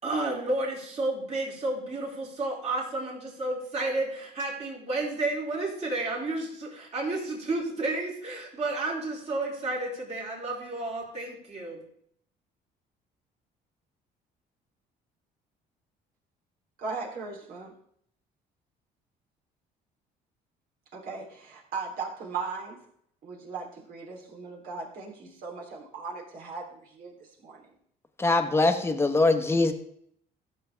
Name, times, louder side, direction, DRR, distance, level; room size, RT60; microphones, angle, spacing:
voice 1, 0.0-11.8, right 2 dB, 40° right, -3 dB, 4.3 m, -31 dB
voice 2, 16.8-17.7 20.9-22.8 23.2-27.6, right 4 dB, 60° right, -2 dB, 3.5 m, -38 dB
voice 3, 28.2-29.7, left 2 dB, 15° left, 6 dB, 1.2 m, -22 dB
15.0 x 7.0 x 3.5 m, 0.66 s
cardioid pair, 110°, 17 cm